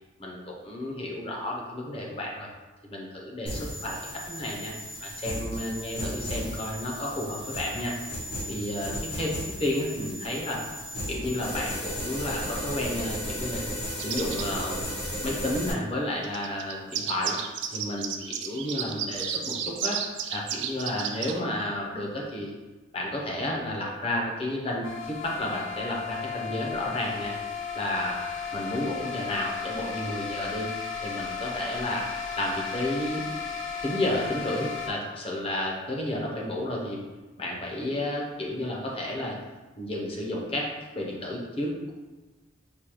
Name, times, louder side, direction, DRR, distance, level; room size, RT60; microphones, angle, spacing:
voice 1, 0.2-2.5 2.9-4.7 5.0-7.9 8.5-9.3 9.6-10.6 11.1-13.6 13.9-14.9 15.2-17.3 17.7-20.0 20.3-22.5 22.9-27.3 27.7-28.2 28.5-30.7 31.0-32.0 32.4-33.2 33.8-37.0 37.4-39.3 39.8-41.9, left 1 dB, 30° left, -2 dB, 0.7 m, -31 dB
sound 1, 3.5-15.7, equal, 60° left, 1.1 m, -35 dB
sound 2, 14.0-14.5 16.2-21.4, right 8 dB, 65° right, 0.3 m, -32 dB
sound 3, 24.8-34.9, left 6 dB, 85° left, 0.6 m, -35 dB
5.1 x 2.2 x 3.0 m, 1.2 s
head